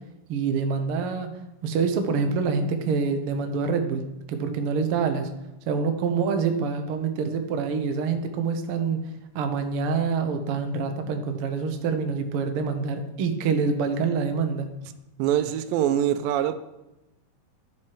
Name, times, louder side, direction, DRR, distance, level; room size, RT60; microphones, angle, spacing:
voice 1, 0.3-1.3 1.6-5.3 5.7-9.0 9.3-14.7, right 5 dB, 70° right, 6 dB, 1.3 m, -26 dB
voice 2, 15.2-16.6, right 11 dB, 90° right, 12 dB, 2.3 m, -23 dB
11.5 x 7.5 x 4.7 m, 0.92 s
omnidirectional pair, 4.0 m